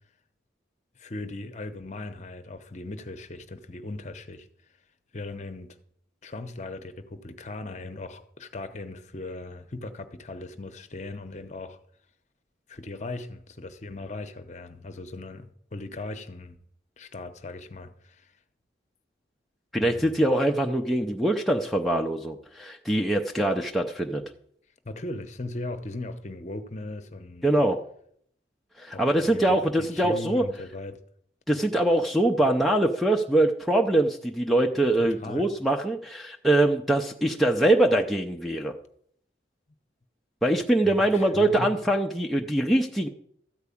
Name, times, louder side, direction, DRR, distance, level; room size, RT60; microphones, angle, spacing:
voice 1, 1.0-4.5 5.1-5.8 6.2-11.8 12.7-16.6 17.0-18.3 19.8-20.2 24.8-27.5 28.9-31.0 34.9-35.5 40.8-41.8, left 2 dB, 40° left, 0.8 m, -38 dB
voice 2, 19.7-24.2 27.4-27.8 28.8-30.4 31.5-38.7 40.4-43.1, right 1 dB, ahead, 0.5 m, -23 dB
13.5 x 4.7 x 8.5 m
head